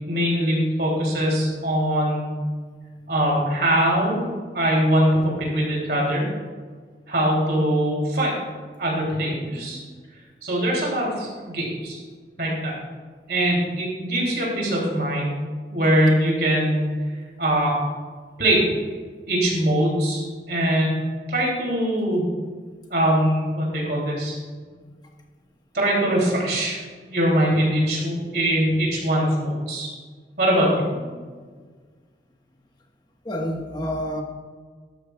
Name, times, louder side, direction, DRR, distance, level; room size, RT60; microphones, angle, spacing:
voice 1, 0.1-2.3 3.1-6.2 7.1-8.3 8.8-9.8 10.4-12.0 12.4-12.7 13.3-15.4 15.7-16.9 17.4-17.8 18.4-18.6 19.3-21.0 21.3-22.2 22.9-24.4 25.7-26.8 27.1-29.9 30.4-30.9, right 1 dB, 60° right, -3 dB, 3.0 m, -22 dB
voice 2, 9.5-9.8 31.0-31.3 33.2-34.2, equal, 25° left, 1 dB, 1.3 m, -30 dB
12.5 x 12.5 x 2.3 m, 1.6 s
head